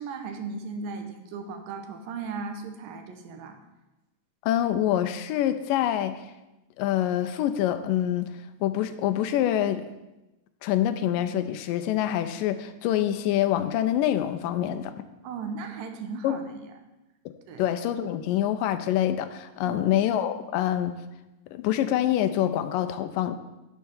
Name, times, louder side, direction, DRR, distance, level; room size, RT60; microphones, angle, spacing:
voice 1, 0.0-3.6 15.2-16.4 17.5-17.6 19.6-19.8, right 4 dB, 85° right, 6 dB, 2.7 m, -36 dB
voice 2, 4.4-6.3 6.8-8.3 8.6-9.8 10.6-14.9 16.2-16.4 17.6-20.9 21.5-23.4, left 11 dB, 90° left, 9 dB, 2.2 m, -26 dB
9.8 x 4.7 x 7.0 m, 1.0 s
omnidirectional pair, 3.9 m